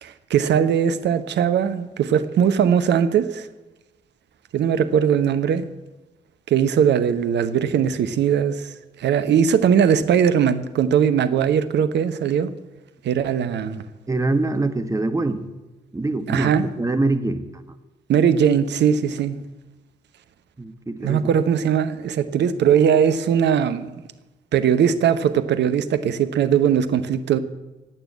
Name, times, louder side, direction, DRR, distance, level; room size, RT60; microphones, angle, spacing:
voice 1, 0.0-3.5 4.5-5.6 6.5-12.5 13.0-13.8 16.3-16.7 18.1-19.4 21.0-23.9 24.5-27.4, right 8 dB, 55° right, 1.0 m, -20 dB
voice 2, 14.1-15.4 15.9-17.5 20.6-21.3, right 2 dB, 15° right, 1.6 m, -24 dB
15.0 x 9.2 x 8.7 m
hypercardioid pair, 45°, 21 cm